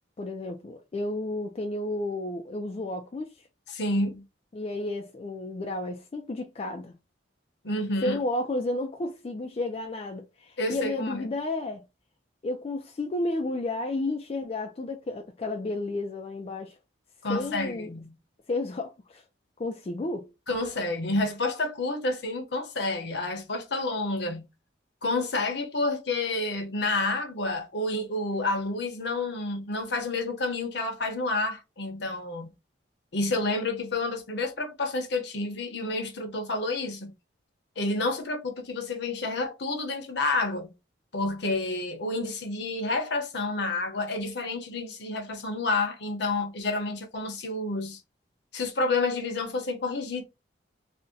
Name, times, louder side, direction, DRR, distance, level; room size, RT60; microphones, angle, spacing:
voice 1, 0.2-3.4 4.5-6.9 8.0-11.8 12.4-16.8 17.3-17.9 18.5-19.2 19.6-20.3, left 2 dB, 30° left, 0.3 m, -32 dB
voice 2, 3.7-4.2 7.6-8.2 10.6-11.3 17.2-18.1 20.5-24.4 25.0-32.5 33.1-37.1 37.8-40.7 41.1-48.0 48.5-50.2, left 2 dB, 60° left, 0.7 m, -29 dB
2.6 x 2.1 x 3.6 m
head